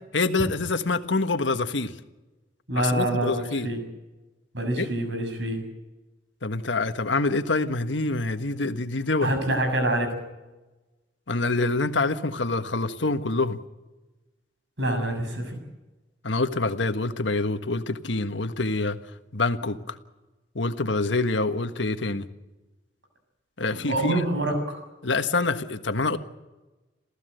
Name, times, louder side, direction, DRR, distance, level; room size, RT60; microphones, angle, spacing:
voice 1, 0.1-1.9 2.8-3.7 4.8-4.9 6.4-9.3 11.3-13.6 16.2-19.0 19.3-20.0 20.5-22.3 23.6-24.1 25.0-26.2, left 3 dB, 85° left, 9 dB, 1.5 m, -26 dB
voice 2, 2.7-3.8 4.5-5.6 9.2-10.1 14.8-15.6 23.9-24.8, right 1 dB, 75° right, 6 dB, 6.8 m, -26 dB
28.5 x 15.0 x 7.9 m, 1.1 s
head